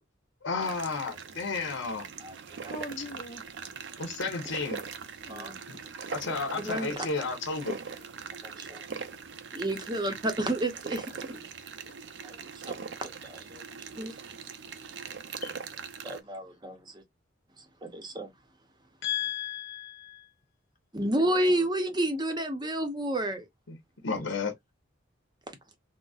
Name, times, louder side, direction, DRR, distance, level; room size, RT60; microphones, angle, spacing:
voice 1, 0.4-2.1 4.0-4.8 6.1-7.8 19.0-20.3 23.7-23.8 24.0-24.5, left 5 dB, 80° left, 0.9 m, -32 dB
sound 1, 0.6-16.2, right 6 dB, 60° right, 0.5 m, -41 dB
voice 2, 2.7-3.4 5.2-5.9 7.9-8.1 8.5-8.7 9.3-9.4 11.8-12.0 12.4-12.5 15.4-15.6, left 1 dB, 40° left, 0.5 m, -44 dB
voice 3, 6.6-7.1 8.4-8.8 9.5-11.4 12.2-12.4 12.7-12.8 13.0-14.1 16.0-17.0 17.8-18.3 20.9-23.5, right 1 dB, 20° right, 0.7 m, -31 dB
3.9 x 2.1 x 2.3 m
head